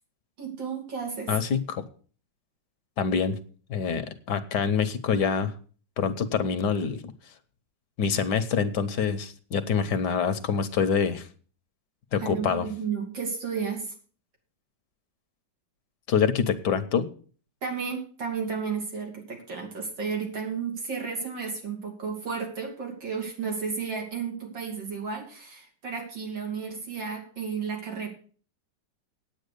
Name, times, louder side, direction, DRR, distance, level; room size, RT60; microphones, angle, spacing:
voice 1, 0.4-1.3 12.2-13.9 17.6-28.1, right 5 dB, 80° right, 0 dB, 3.7 m, -33 dB
voice 2, 1.3-1.8 3.0-3.4 3.7-5.5 6.0-7.1 8.0-11.3 12.1-12.7 16.1-17.1, left 6 dB, 70° left, 11 dB, 1.4 m, -26 dB
9.2 x 8.8 x 6.7 m, 0.42 s
omnidirectional pair, 2.0 m